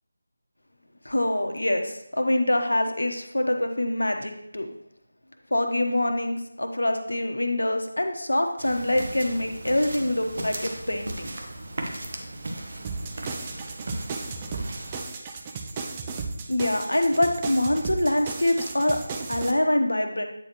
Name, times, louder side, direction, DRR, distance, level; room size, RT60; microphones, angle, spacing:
voice 1, 1.0-4.7 5.5-11.3 16.5-19.0 19.3-20.3, left 1 dB, 80° left, 4 dB, 0.9 m, -25 dB
sound 1, 8.6-15.0, right 1 dB, 45° right, 0.9 m, -37 dB
sound 2, 12.8-19.5, right 4 dB, 20° right, 0.5 m, -35 dB
8.8 x 4.1 x 3.0 m, 0.78 s
figure-of-eight pair, 160°, 0 cm